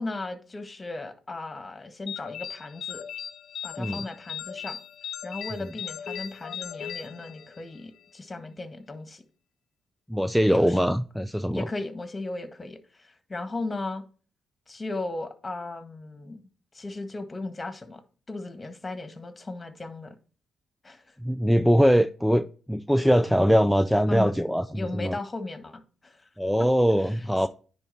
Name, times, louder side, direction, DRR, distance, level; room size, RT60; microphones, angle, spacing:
voice 1, 0.0-3.0 3.6-4.8 5.2-9.2 10.5-10.9 11.5-14.0 14.7-16.4 16.7-18.0 18.3-20.2 20.8-21.1 24.1-24.4 24.7-26.3 27.0-27.5, left 2 dB, 25° left, 1.7 m, -36 dB
sound 1, 2.1-7.8, left 9 dB, 65° left, 0.7 m, -38 dB
voice 2, 10.1-11.7 21.2-25.1 26.4-27.5, equal, ahead, 0.5 m, -22 dB
9.9 x 4.0 x 4.2 m
supercardioid pair, 55°, 0 cm